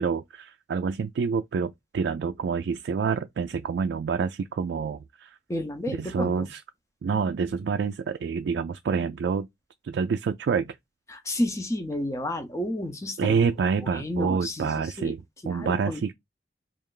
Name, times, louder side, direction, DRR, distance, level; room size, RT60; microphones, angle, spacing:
voice 1, 0.0-5.3 5.9-6.6 7.0-9.5 9.8-10.8 13.2-15.2 15.5-16.1, right 5 dB, 80° right, 0.3 m, -27 dB
voice 2, 5.5-6.5 11.1-13.5 13.8-15.1 15.4-16.0, left 1 dB, 15° left, 0.6 m, -31 dB
3.2 x 2.4 x 3.7 m
head